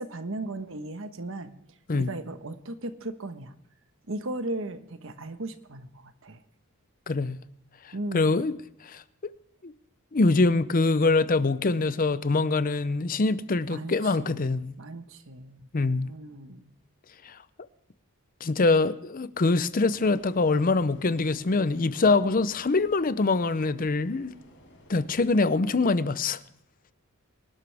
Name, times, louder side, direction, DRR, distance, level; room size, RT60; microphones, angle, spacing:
voice 1, 0.0-1.5 1.9-3.5 4.1-6.4 7.9-8.4 13.7-15.6 16.0-16.7, right 2 dB, 60° right, 1.2 m, -37 dB
voice 2, 7.1-7.4 7.8-8.5 8.8-9.3 9.6-9.7 10.1-14.7 15.7-16.1 17.2-17.4 18.4-24.3 24.9-26.4, left 3 dB, 40° left, 0.6 m, -24 dB
sound 1, 19.8-25.4, equal, 55° left, 5.0 m, -53 dB
25.5 x 12.0 x 3.4 m
head